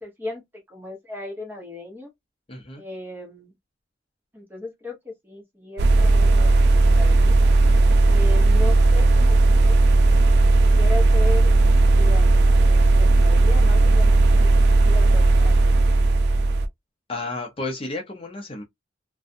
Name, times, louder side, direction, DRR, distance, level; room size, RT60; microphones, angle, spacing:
voice 1, 0.0-2.1 2.8-3.5 4.3-6.5 6.9-7.4 8.1-9.4 9.6-9.9 10.7-11.5 11.9-15.6, left 2 dB, 10° right, 1.0 m, -36 dB
voice 2, 2.5-2.8 17.1-18.6, left 2 dB, 30° left, 0.6 m, -32 dB
sound 1, 5.8-16.7, right 2 dB, 60° right, 0.4 m, -16 dB
2.5 x 2.2 x 2.5 m
head